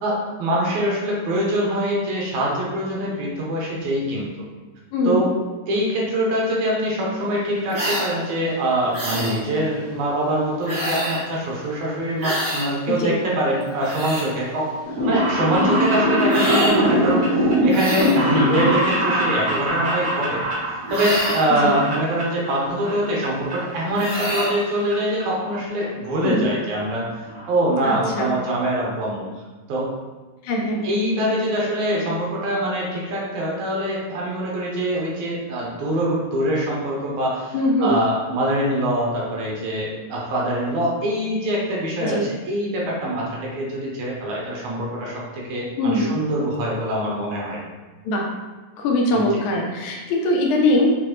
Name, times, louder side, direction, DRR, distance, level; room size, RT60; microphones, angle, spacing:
voice 1, 0.0-4.3 5.0-5.3 5.7-20.4 20.7-27.1 27.5-29.3 29.7-29.9 30.8-47.6 49.1-49.4, right 1 dB, 75° right, -4 dB, 2.3 m, -24 dB
voice 2, 4.9-5.3 13.0-13.2 18.0-18.4 21.6-21.8 26.2-26.5 27.8-28.3 30.4-30.9 37.5-38.0 42.0-42.3 45.8-46.2 48.1-48.3 48.8-50.9, left 1 dB, 75° left, -1 dB, 2.0 m, -21 dB
sound 1, 7.7-8.1 8.9-9.4 10.7-11.2 12.2-12.7 13.6-14.3 16.3-16.8 17.7-18.2 20.9-21.5 23.9-24.5, equal, 40° right, 1.5 m, -26 dB
sound 2, 14.8-22.6 22.8-23.5 23.9-24.9 25.2-25.3 26.2-26.3 26.5-26.6 26.9-27.0 27.3-27.5 27.9-28.0 28.2-28.3, right 1 dB, 60° right, 1.1 m, -22 dB
6.7 x 2.5 x 3.0 m, 1.3 s
omnidirectional pair, 3.5 m